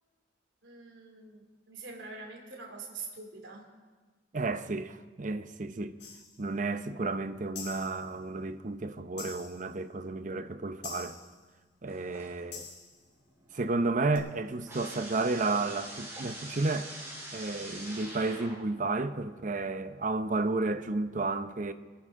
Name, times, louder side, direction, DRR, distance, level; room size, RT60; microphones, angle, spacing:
voice 1, 0.6-3.7, right 4 dB, 85° right, 3.0 m, -45 dB
voice 2, 4.3-6.0 6.4-11.2 11.8-12.6 13.5-16.9 17.3-21.7, right 3 dB, 45° right, 0.7 m, -32 dB
sound 1, 6.0-6.4 7.5-8.1 9.2-9.6 10.8-11.4 12.5-13.0 14.1-14.2, left 6 dB, 70° left, 3.8 m, -45 dB
sound 2, 11.9-12.7 13.0-18.8, right 1 dB, 15° right, 4.9 m, -45 dB
25.5 x 11.5 x 3.7 m
head